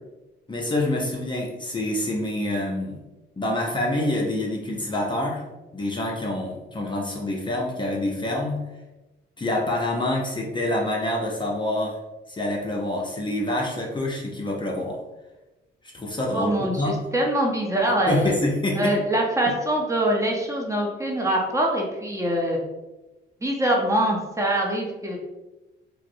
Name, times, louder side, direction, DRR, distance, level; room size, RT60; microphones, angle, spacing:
voice 1, 0.5-3.0 3.4-5.4 5.7-8.6 9.4-12.0 12.3-15.0 15.9-17.0 18.1-19.0, left 1 dB, 25° left, -1 dB, 0.6 m, -26 dB
voice 2, 16.3-18.3 18.8-22.6 23.4-25.2, right 1 dB, 15° right, -1 dB, 0.7 m, -24 dB
4.4 x 2.0 x 2.6 m, 1.1 s
cardioid pair, 90°, 20 cm